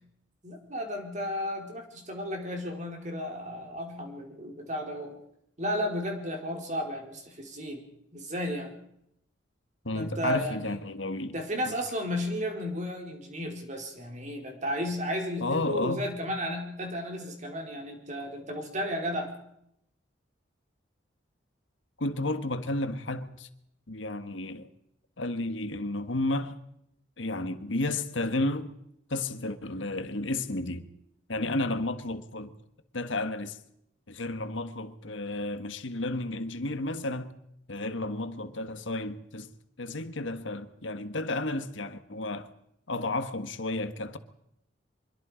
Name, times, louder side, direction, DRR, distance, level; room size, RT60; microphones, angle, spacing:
voice 1, 0.4-5.1 5.6-7.8 8.1-8.7 9.9-10.8 11.3-19.3, equal, 40° right, 4.5 m, -33 dB
voice 2, 9.8-11.3 11.7-11.8 15.4-16.0 22.0-23.5 23.9-24.7 25.2-26.6 27.2-28.7 29.1-30.8 31.3-32.5 32.9-33.6 34.1-37.3 37.7-39.5 39.8-42.5 42.9-44.2, left 2 dB, 85° left, 1.5 m, -32 dB
25.0 x 22.5 x 5.1 m
head